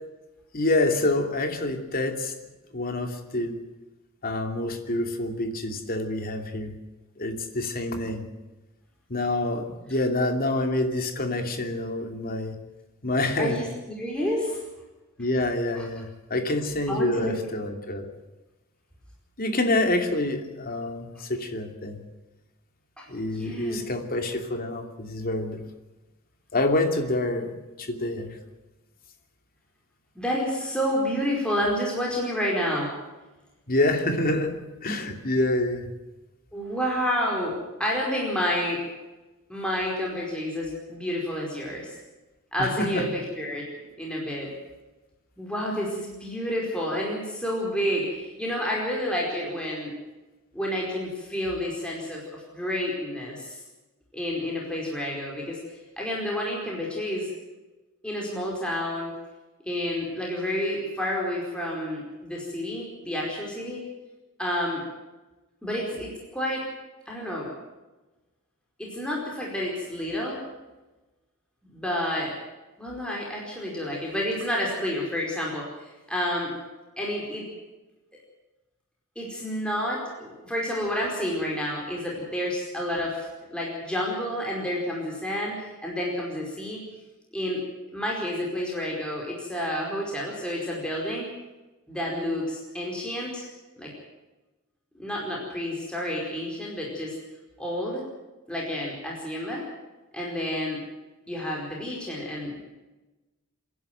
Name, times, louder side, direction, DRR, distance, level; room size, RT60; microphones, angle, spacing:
voice 1, 0.5-2.3 2.7-3.6 4.2-6.7 7.2-8.2 9.1-12.6 13.0-13.6 15.2-18.1 19.4-22.0 23.1-25.6 26.5-28.4 33.7-34.5 34.8-35.9 42.6-43.0, left 2 dB, 45° left, 5 dB, 2.8 m, -27 dB
voice 2, 13.4-14.6 15.7-15.8 16.9-17.3 23.0-23.1 23.3-23.8 30.1-32.9 36.5-38.8 39.5-41.9 42.5-43.6 44.0-44.5 45.4-49.9 50.5-53.6 54.1-55.6 56.0-57.3 58.0-59.1 59.6-63.8 64.4-64.8 65.6-66.6 67.1-67.5 68.8-70.4 71.7-72.3 72.8-76.5 77.0-77.4 79.1-86.8 87.3-87.6 87.9-91.3 91.9-93.5 93.8-93.9 94.9-97.1 97.6-98.0 98.5-99.7 100.1-100.8 101.3-102.7, equal, 5° left, -3 dB, 4.8 m, -29 dB
26.5 x 11.0 x 9.3 m, 1.1 s
head